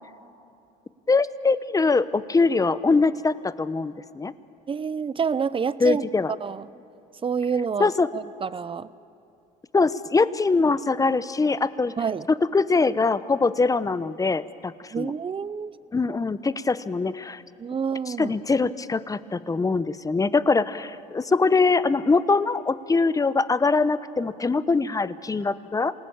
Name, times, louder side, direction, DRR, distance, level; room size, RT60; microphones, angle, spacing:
voice 1, 1.1-4.3 5.8-6.3 7.8-8.1 9.7-11.9 12.3-15.1 15.9-17.4 18.1-25.9, left 4 dB, 20° left, 16 dB, 0.9 m, -23 dB
voice 2, 4.7-6.0 6.4-6.7 7.2-8.9 12.0-12.3 14.9-15.7 17.6-18.3, right 6 dB, 30° right, 17 dB, 0.7 m, -28 dB
27.0 x 19.0 x 8.8 m, 2.7 s
supercardioid pair, 90°, 19 cm